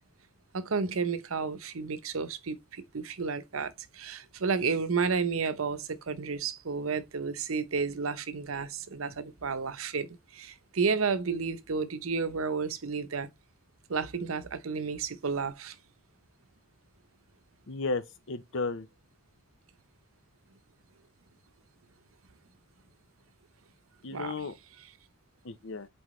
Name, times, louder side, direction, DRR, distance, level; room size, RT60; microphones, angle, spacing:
voice 1, 0.5-13.3 13.9-15.8 24.1-24.3, right 5 dB, 90° right, 0.8 m, -32 dB
voice 2, 17.7-18.9 24.0-24.6 25.4-25.9, left 3 dB, 70° left, 0.8 m, -34 dB
7.8 x 3.9 x 3.1 m
head